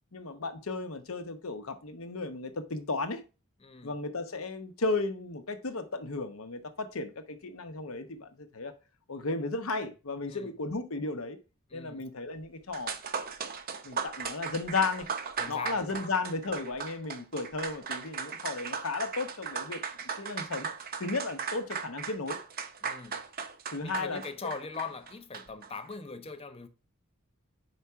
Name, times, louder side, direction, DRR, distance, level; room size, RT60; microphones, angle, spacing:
voice 1, 0.1-3.2 3.8-8.7 9.1-11.4 11.7-13.0 13.8-15.1 15.5-20.7 21.0-22.4 23.7-24.2, left 3 dB, 70° left, 1.0 m, -34 dB
voice 2, 3.6-3.9 10.3-10.5 11.7-12.1 15.4-16.1 22.8-23.2 23.8-26.7, left 4 dB, 25° left, 0.7 m, -41 dB
sound 1, 12.4-12.5 12.7-25.7, right 6 dB, 45° right, 0.7 m, -37 dB
4.9 x 4.8 x 5.6 m
head